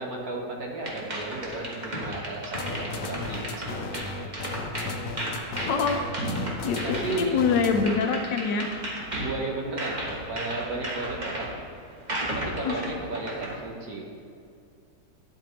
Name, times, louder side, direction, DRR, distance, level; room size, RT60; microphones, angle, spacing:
voice 1, 0.0-4.0 4.8-5.0 6.2-6.4 6.8-7.4 9.2-11.5 12.2-14.1, right 2 dB, 55° right, -1 dB, 1.7 m, -34 dB
sound 1, 0.8-13.6, right 1 dB, 30° right, 1.1 m, -35 dB
sound 2, 2.5-8.1, left 3 dB, 60° left, 1.0 m, -35 dB
voice 2, 5.6-6.2 6.6-8.8 12.6-12.8, left 5 dB, 75° left, 5 dB, 1.4 m, -25 dB
10.5 x 8.0 x 3.2 m, 2.4 s
omnidirectional pair, 2.0 m